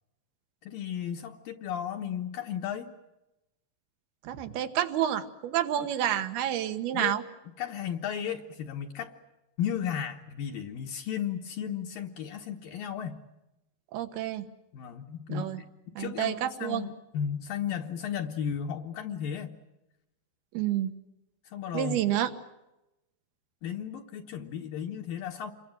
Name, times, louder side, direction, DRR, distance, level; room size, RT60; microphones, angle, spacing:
voice 1, 0.6-2.9 5.8-5.9 6.9-7.2 7.6-9.1 9.6-13.2 14.7-15.5 16.0-19.6 21.5-22.0 23.6-25.5, left 8 dB, 65° left, 2 dB, 2.6 m, -34 dB
voice 2, 4.2-7.2 13.9-14.5 15.3-15.6 16.0-16.9 20.5-20.9 21.7-22.3, right 11 dB, 70° right, 8 dB, 3.2 m, -29 dB
28.5 x 23.0 x 7.8 m, 0.95 s
omnidirectional pair, 4.8 m